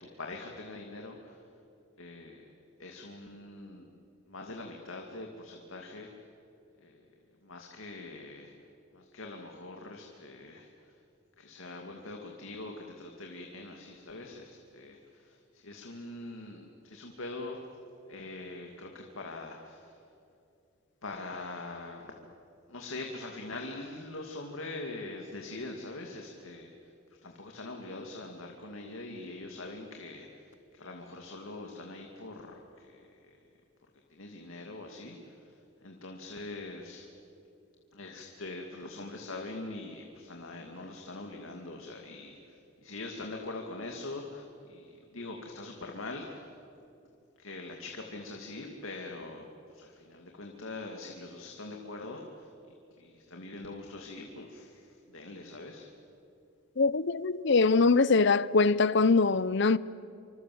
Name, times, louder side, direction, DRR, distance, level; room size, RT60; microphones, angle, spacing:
voice 1, 0.0-1.4 2.0-2.5 2.8-3.9 4.3-6.1 6.8-7.0 7.4-8.5 8.9-10.7 11.4-17.6 18.1-19.9 21.0-22.1 22.7-26.7 27.2-33.1 34.1-35.4 35.8-37.1 37.9-42.6 42.8-46.5 47.4-52.5 53.0-55.9, left 2 dB, 75° left, 2.4 m, -43 dB
voice 2, 56.8-59.8, left 4 dB, 55° left, 0.7 m, -23 dB
27.5 x 25.5 x 7.8 m
head